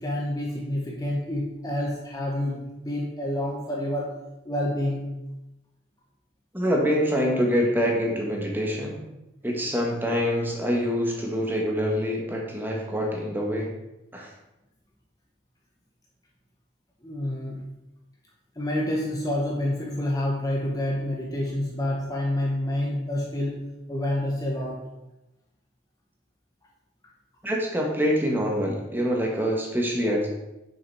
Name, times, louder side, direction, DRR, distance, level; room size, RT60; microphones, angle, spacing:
voice 1, 0.0-5.1 17.0-17.6 18.6-24.9, left 1 dB, 20° left, -2 dB, 1.0 m, -28 dB
voice 2, 6.5-9.0 9.4-13.7 14.1-14.3 27.4-30.3, equal, 10° right, -1 dB, 1.5 m, -25 dB
7.0 x 6.5 x 4.8 m, 0.94 s
head